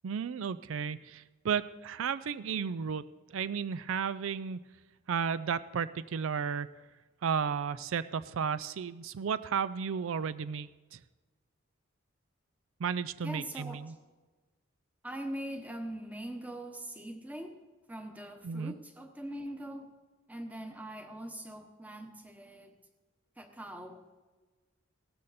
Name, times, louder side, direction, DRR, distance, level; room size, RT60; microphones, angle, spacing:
voice 1, 0.0-4.6 5.1-6.9 7.2-11.0 12.8-13.9 18.4-18.7, right 6 dB, 75° right, 15 dB, 0.4 m, -33 dB
voice 2, 13.2-13.8 15.0-17.6 17.9-19.9 20.3-22.8 23.4-24.0, right 1 dB, 10° right, 6 dB, 1.1 m, -42 dB
16.5 x 13.0 x 4.2 m, 1.3 s
head